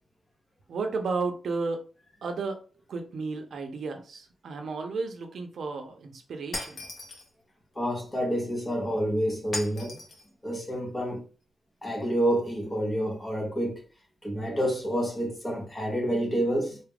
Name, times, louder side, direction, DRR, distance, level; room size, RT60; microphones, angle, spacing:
voice 1, 0.7-1.9 2.2-2.6 2.9-6.8, right 4 dB, 60° right, 0.7 m, -33 dB
Shatter, 6.5-7.3 9.5-10.3, left 2 dB, 45° left, 1.0 m, -37 dB
voice 2, 7.8-10.0 10.4-11.2 11.8-13.8 14.2-16.8, equal, 15° left, 0.8 m, -28 dB
4.1 x 2.4 x 3.4 m
wide cardioid pair, 150°, 0 cm